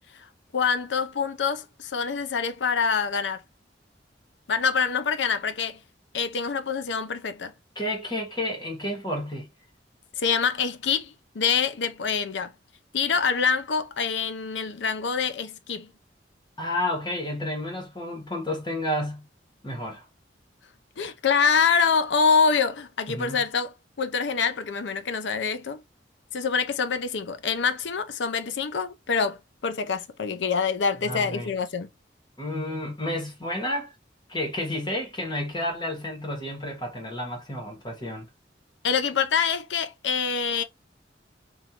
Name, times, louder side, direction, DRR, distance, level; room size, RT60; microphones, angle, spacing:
voice 1, 0.5-3.4 4.5-5.8 6.1-7.5 10.2-12.5 12.9-15.9 21.0-25.8 26.3-31.9 38.8-40.6, left 6 dB, 75° left, 0.5 m, -25 dB
voice 2, 7.7-9.5 16.6-19.2 19.6-20.0 23.1-23.4 31.0-31.5 32.4-33.9 34.3-38.3, left 1 dB, 25° left, 1.3 m, -31 dB
3.7 x 2.6 x 2.8 m
head